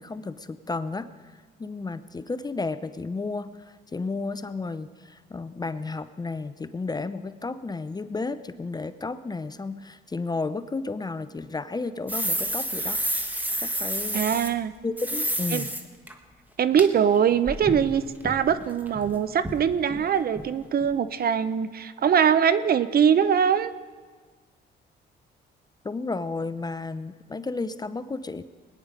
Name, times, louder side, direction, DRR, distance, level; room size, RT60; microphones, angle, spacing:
voice 1, 0.0-13.0 13.6-14.3 14.8-15.7 25.8-28.4, left 3 dB, 20° left, 13 dB, 0.5 m, -33 dB
sound 1, 12.1-14.5 15.0-15.8 16.1-16.2 16.8-16.9 17.1-19.1 19.4-19.6 19.9-20.0 20.4-20.5 20.8-20.9, right 1 dB, 10° right, 1.3 m, -30 dB
voice 2, 14.1-14.7 15.5-15.6 16.6-23.7, right 8 dB, 50° right, 14 dB, 0.7 m, -22 dB
20.5 x 9.7 x 5.1 m, 1.5 s
cardioid pair, 90°, 20 cm